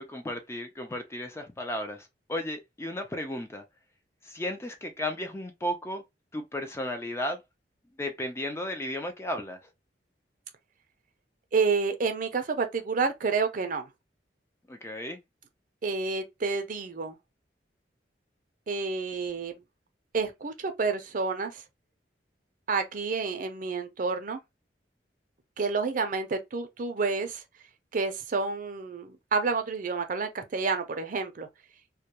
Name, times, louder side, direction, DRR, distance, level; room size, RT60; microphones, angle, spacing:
voice 1, 0.0-3.6 4.2-6.0 6.3-7.4 8.0-9.7 14.7-15.2, left 1 dB, 15° left, 0.3 m, -34 dB
voice 2, 11.5-13.8 15.8-17.2 18.7-19.5 20.1-21.6 22.7-24.4 25.6-27.4 27.9-31.5, right 4 dB, 45° right, 0.5 m, -29 dB
2.2 x 2.2 x 2.7 m
head